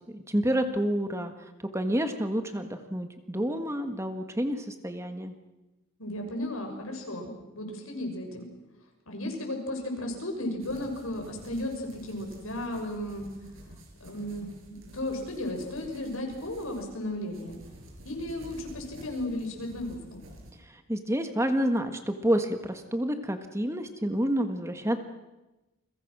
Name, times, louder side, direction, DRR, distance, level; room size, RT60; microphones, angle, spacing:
voice 1, 0.1-1.3 1.7-5.4 20.9-25.0, equal, 15° right, 7 dB, 1.6 m, -29 dB
voice 2, 6.0-8.5 9.1-13.3 14.0-17.6 18.0-20.2, left 1 dB, 85° left, 3 dB, 6.3 m, -35 dB
sound 1, 10.6-20.5, equal, 75° right, 6.6 m, -50 dB
29.0 x 23.0 x 6.2 m, 1.0 s
head